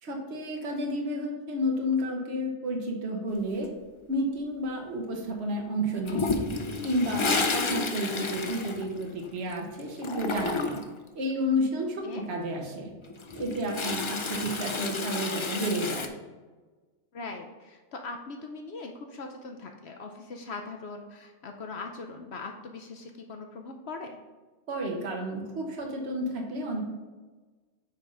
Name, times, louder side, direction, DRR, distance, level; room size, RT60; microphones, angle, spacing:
voice 1, 0.0-3.7 4.1-6.4 6.8-10.8 11.1-12.9 13.3-16.1 24.7-26.8, equal, 60° right, 1 dB, 1.4 m, -31 dB
Toilet flush, 6.1-9.5 9.8-11.0 13.0-16.1, left 3 dB, 45° left, 0.4 m, -31 dB
voice 2, 17.1-24.2, left 3 dB, 60° left, 3 dB, 0.9 m, -40 dB
8.3 x 3.5 x 5.3 m, 1.3 s
omnidirectional pair, 1.3 m